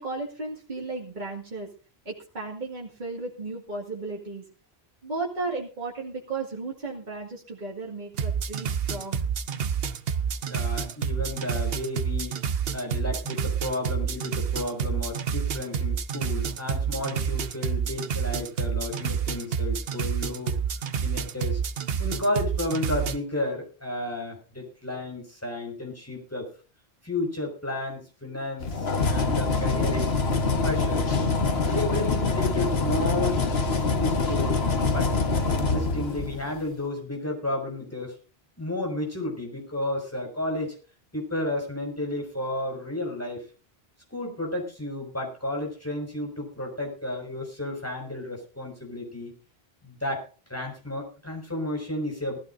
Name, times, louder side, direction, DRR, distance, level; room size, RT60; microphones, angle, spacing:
voice 1, 0.0-1.7 2.1-4.4 5.0-9.3, right 3 dB, 45° right, -2 dB, 2.2 m, -34 dB
sound 1, 8.1-23.2, right 7 dB, 70° right, 1.0 m, -29 dB
voice 2, 10.5-12.4 12.7-20.5 21.0-21.6 22.0-26.5 27.0-30.1 30.6-31.1 31.6-33.4 33.8-35.1 35.5-38.1 38.6-40.7 41.1-43.4 44.1-49.3 49.8-52.4, left 1 dB, 15° left, 0 dB, 5.6 m, -32 dB
sound 2, 28.6-36.6, left 3 dB, 75° left, 1.5 m, -25 dB
19.5 x 14.5 x 2.6 m, 0.34 s
omnidirectional pair, 1.0 m